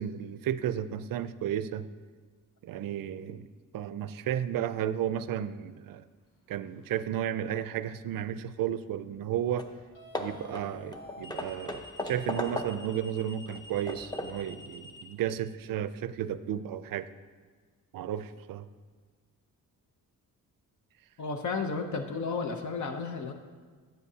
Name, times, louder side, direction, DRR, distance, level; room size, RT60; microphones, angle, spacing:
voice 1, 0.0-1.9 2.6-3.5 3.7-6.0 6.5-9.7 10.2-17.1 17.9-18.7, right 10 dB, 75° right, 13 dB, 0.5 m, -33 dB
sound 1, 6.6-7.0 9.9-15.0, left 2 dB, 80° left, 1.8 m, -49 dB
Hammer / Wood, 9.2-9.3 9.6-9.8 10.1-13.0 13.5-14.5, left 1 dB, 10° left, 0.6 m, -37 dB
voice 2, 21.2-23.3, left 4 dB, 55° left, 5 dB, 0.8 m, -33 dB
15.0 x 7.7 x 2.8 m, 1.5 s
cardioid pair, 110°, 34 cm